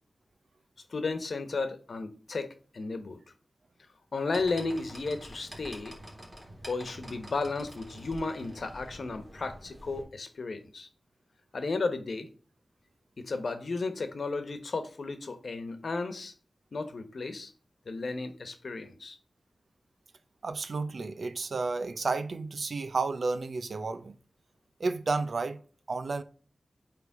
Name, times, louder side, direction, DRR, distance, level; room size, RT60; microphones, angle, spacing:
voice 1, 0.9-3.2 4.1-6.0 6.7-10.9 11.5-12.3 13.2-16.3 16.7-17.5 17.9-19.2, left 3 dB, 70° left, 1.1 m, -34 dB
sound 1, 4.3-10.0, equal, 25° right, 3.5 m, -47 dB
voice 2, 20.4-24.1 24.8-25.6 25.9-26.2, right 3 dB, 70° right, 0.7 m, -31 dB
8.1 x 3.4 x 4.9 m
wide cardioid pair, 80°, 0 cm